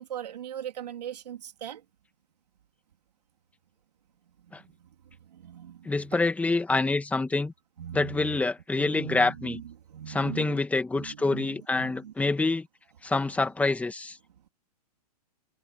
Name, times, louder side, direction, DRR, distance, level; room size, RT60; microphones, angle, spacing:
voice 1, 0.0-1.8 5.3-5.9 7.8-8.3 8.7-9.6 9.9-10.6 10.9-12.1, right 10 dB, 80° right, 3.3 m, -39 dB
voice 2, 5.8-7.5 7.9-9.6 10.1-12.7 13.0-14.2, left 3 dB, 5° left, 2.2 m, -26 dB
hypercardioid pair, 130°, 20 cm